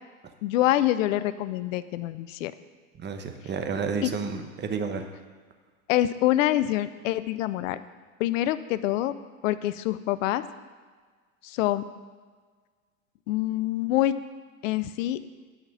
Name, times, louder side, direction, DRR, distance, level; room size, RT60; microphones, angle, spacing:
voice 1, 0.4-2.5 4.0-4.1 5.9-7.8 8.2-9.1 9.4-10.4 11.4-11.9 13.3-14.2 14.6-15.2, left 14 dB, 65° left, 14 dB, 0.7 m, -25 dB
voice 2, 3.0-5.0, right 5 dB, 25° right, 6 dB, 1.1 m, -31 dB
11.0 x 5.9 x 6.7 m, 1.5 s
hypercardioid pair, 105°, 41 cm